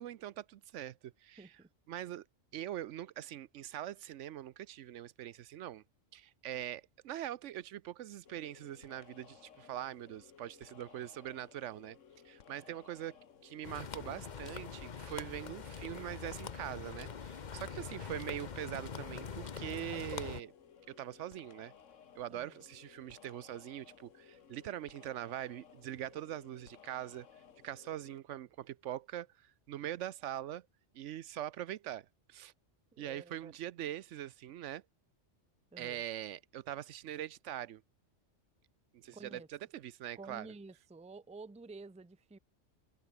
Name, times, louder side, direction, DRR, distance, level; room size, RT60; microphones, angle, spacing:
voice 1, 0.0-1.5 1.9-2.2 2.5-5.8 6.1-12.0 12.2-20.5 20.9-21.7 22.2-27.3 27.6-30.7 30.9-32.5 33.0-34.8 35.8-37.8 38.9-40.5, right 12 dB, 75° right, 1.0 m, -43 dB
voice 2, 1.4-1.7 22.3-22.6 32.9-33.5 35.7-36.0 39.1-39.5 40.1-42.4, right 3 dB, 10° right, 0.5 m, -51 dB
sound 1, 8.2-28.2, left 7 dB, 85° left, 1.6 m, -59 dB
sound 2, 13.6-20.4, left 6 dB, 40° left, 1.0 m, -44 dB
omnidirectional pair, 1.3 m